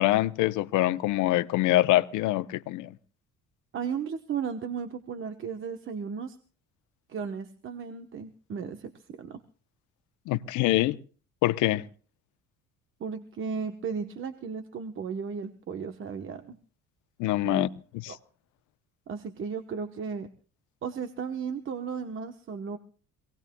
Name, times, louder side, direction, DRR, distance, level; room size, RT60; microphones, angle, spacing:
voice 1, 0.0-2.9 10.3-11.0 11.4-11.8 17.2-17.7 18.0-18.1, left 16 dB, 80° left, 0.8 m, -24 dB
voice 2, 3.7-6.4 7.1-9.4 13.0-16.6 17.4-17.7 18.1-18.2 19.1-20.3 20.8-22.8, right 6 dB, 40° right, 1.1 m, -35 dB
26.0 x 18.0 x 2.3 m
cardioid pair, 120°, 30 cm